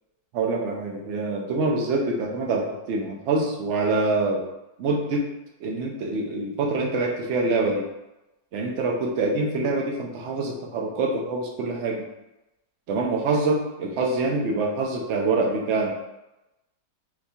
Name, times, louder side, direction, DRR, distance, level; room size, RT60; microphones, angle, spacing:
voice 1, 0.3-4.4 4.8-5.2 5.6-7.8 8.5-12.0 12.9-15.9, right 3 dB, 70° right, 0 dB, 0.6 m, -25 dB
4.1 x 2.3 x 2.7 m, 0.94 s
omnidirectional pair, 1.9 m